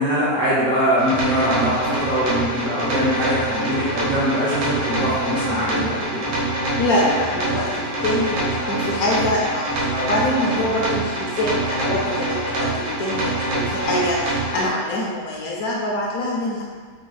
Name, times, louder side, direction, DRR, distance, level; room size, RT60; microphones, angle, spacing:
voice 1, 0.0-6.2, equal, 45° right, -9 dB, 0.7 m, -22 dB
sound 1, 1.0-14.7, right 1 dB, 90° right, 1.7 m, -25 dB
voice 2, 6.8-16.6, left 1 dB, 70° left, -3 dB, 1.0 m, -24 dB
4.6 x 2.3 x 3.1 m, 1.5 s
omnidirectional pair, 1.9 m